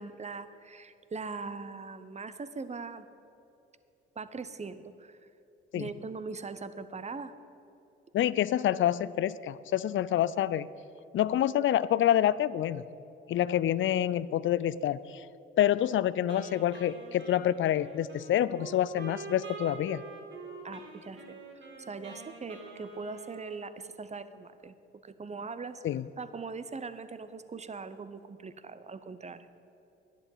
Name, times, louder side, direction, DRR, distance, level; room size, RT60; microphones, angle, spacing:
voice 1, 0.0-3.1 4.2-5.2 5.7-7.3 20.6-24.8 25.0-25.8 26.2-29.5, right 4 dB, 20° right, 12 dB, 0.8 m, -41 dB
voice 2, 8.1-10.7 11.1-12.8 13.3-15.2 15.6-20.0 25.8-26.1, left 11 dB, 40° left, 18 dB, 0.4 m, -27 dB
Wind instrument woodwind instrument, 16.3-24.2, right 4 dB, 40° right, 2.9 m, -46 dB
11.0 x 10.5 x 5.6 m, 2.9 s
hypercardioid pair, 45°, 30 cm